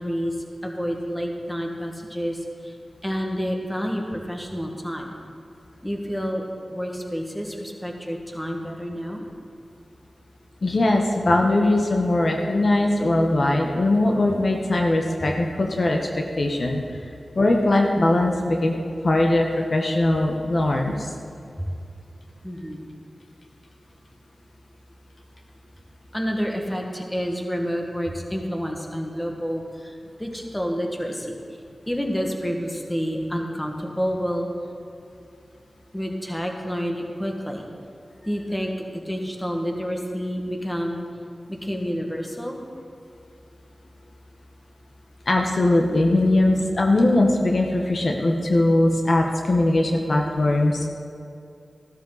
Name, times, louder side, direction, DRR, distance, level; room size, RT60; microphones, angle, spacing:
voice 1, 0.0-2.8 3.0-5.2 5.8-6.4 6.7-9.3 21.6-21.7 22.4-22.8 26.1-31.6 31.9-34.5 35.9-37.7 38.2-41.1 41.5-42.6, equal, 10° left, 1 dB, 1.8 m, -29 dB
voice 2, 10.6-16.8 17.3-18.7 19.0-21.1 45.3-50.9, left 2 dB, 60° left, 1 dB, 1.1 m, -20 dB
14.5 x 12.0 x 4.1 m, 2.6 s
wide cardioid pair, 65°, 0 cm